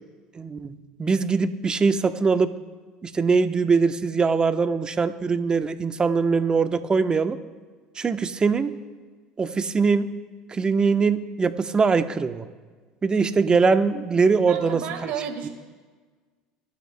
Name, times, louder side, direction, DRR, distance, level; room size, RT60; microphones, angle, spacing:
voice 1, 0.3-2.5 3.0-7.4 8.0-8.7 9.4-10.2 10.5-12.4 13.0-15.1 15.4-15.5, right 4 dB, 25° right, 9 dB, 0.9 m, -22 dB
voice 2, 14.5-15.5, right 8 dB, 65° right, 3 dB, 2.4 m, -32 dB
21.5 x 11.5 x 2.2 m, 1.4 s
hypercardioid pair, 75°, 3 cm